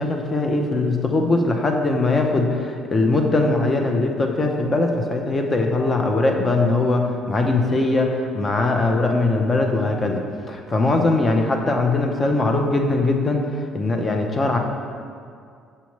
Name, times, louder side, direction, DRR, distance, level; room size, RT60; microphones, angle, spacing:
voice 1, 0.0-10.2 10.5-13.4 13.7-14.6, left 2 dB, 35° left, 3 dB, 0.8 m, -21 dB
7.0 x 5.5 x 3.1 m, 2.3 s
supercardioid pair, 70°, 0 cm